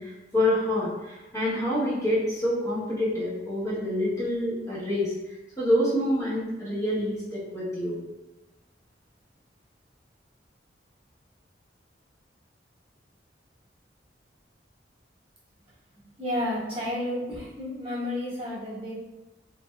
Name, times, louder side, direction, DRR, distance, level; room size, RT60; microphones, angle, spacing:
voice 1, 0.0-8.0, left 1 dB, 20° left, -9 dB, 0.9 m, -27 dB
voice 2, 16.2-18.9, left 1 dB, 30° right, -8 dB, 1.0 m, -31 dB
3.2 x 2.6 x 2.2 m, 1.0 s
head